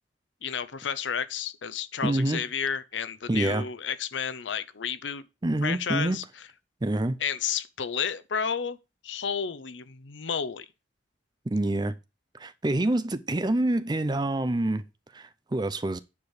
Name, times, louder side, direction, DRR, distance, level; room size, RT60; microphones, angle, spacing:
voice 1, 0.4-5.2 5.6-6.2 7.2-8.8 9.0-10.7, left 7 dB, 80° left, 0.7 m, -31 dB
voice 2, 2.0-2.4 3.3-3.6 5.4-6.2 6.8-7.2 11.5-11.9 12.4-14.8 15.1-16.0, right 1 dB, 20° right, 0.5 m, -26 dB
9.6 x 4.5 x 4.9 m
head